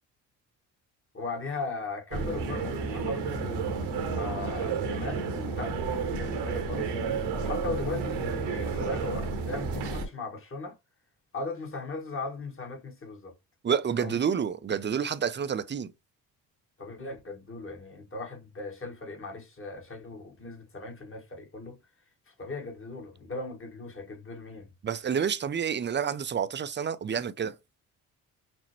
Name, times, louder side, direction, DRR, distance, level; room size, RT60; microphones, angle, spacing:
voice 1, 1.1-3.8 4.2-10.8 11.3-13.3 14.0-14.2 16.8-21.8 22.3-24.7, left 3 dB, 30° left, 1.7 m, -38 dB
sound 1, 2.1-10.1, right 4 dB, 85° right, 1.2 m, -31 dB
voice 2, 13.6-15.9 24.8-27.5, right 7 dB, 25° right, 0.5 m, -29 dB
5.9 x 2.1 x 3.0 m
hypercardioid pair, 55°, 43 cm